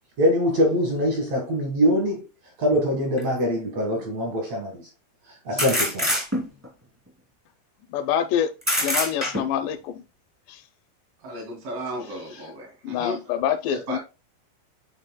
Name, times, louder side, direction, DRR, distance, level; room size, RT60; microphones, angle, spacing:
voice 1, 0.2-2.3 2.6-4.8 5.4-6.1, equal, 70° right, 1.6 m, -23 dB
sound 1, 3.2-3.3 5.6-6.7 8.6-9.6, equal, 20° right, 0.4 m, -24 dB
voice 2, 7.9-8.5 8.8-10.0 10.5-10.6 12.8-14.0, left 9 dB, 80° left, 2.6 m, -26 dB
voice 3, 11.2-13.2 13.7-14.0, equal, 90° right, 5.1 m, -34 dB
12.0 x 4.3 x 2.2 m
omnidirectional pair, 5.2 m